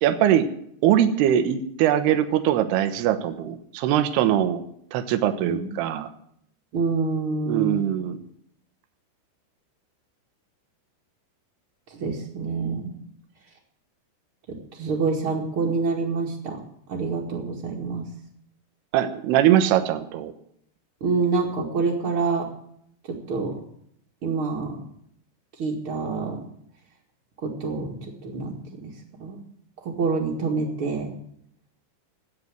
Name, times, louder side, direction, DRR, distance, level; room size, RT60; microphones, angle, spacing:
voice 1, 0.0-0.5 0.8-4.6 4.9-6.1 7.5-8.2 18.9-20.3, right 11 dB, 75° right, 9 dB, 3.0 m, -21 dB
voice 2, 5.4-6.0 6.7-7.9 11.9-12.9 14.5-16.6 16.9-18.1 21.0-22.5 23.1-23.6 24.2-24.8 25.6-26.4 27.4-28.9 29.2-29.4 29.8-31.1, right 4 dB, 40° right, -3 dB, 2.1 m, -27 dB
15.0 x 9.2 x 9.6 m, 0.69 s
omnidirectional pair, 5.0 m